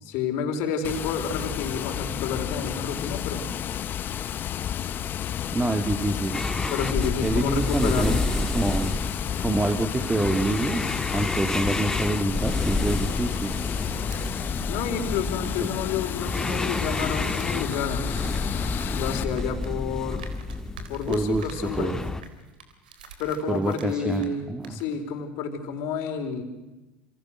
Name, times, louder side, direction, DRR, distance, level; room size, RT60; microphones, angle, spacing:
voice 1, 0.0-3.5 6.7-8.2 14.7-18.0 18.9-20.3 20.9-22.0 23.2-26.4, left 6 dB, 65° left, 5 dB, 4.5 m, -30 dB
Water, 0.8-19.2, left 10 dB, 45° left, 1.2 m, -32 dB
voice 2, 5.5-6.4 7.2-8.1 8.5-8.9 9.4-10.8 11.1-13.6 15.6-15.7 21.1-21.5 21.8-22.0 23.5-24.8, right 2 dB, 15° right, 5 dB, 2.5 m, -26 dB
Nose breathing, 6.3-22.2, left 2 dB, 10° left, 1.8 m, -30 dB
sound 1, 9.6-13.5 13.8-24.4 24.6-24.9, right 5 dB, 85° right, 3.5 m, -48 dB
28.0 x 26.0 x 6.5 m, 1.1 s
hypercardioid pair, 75°, 5 cm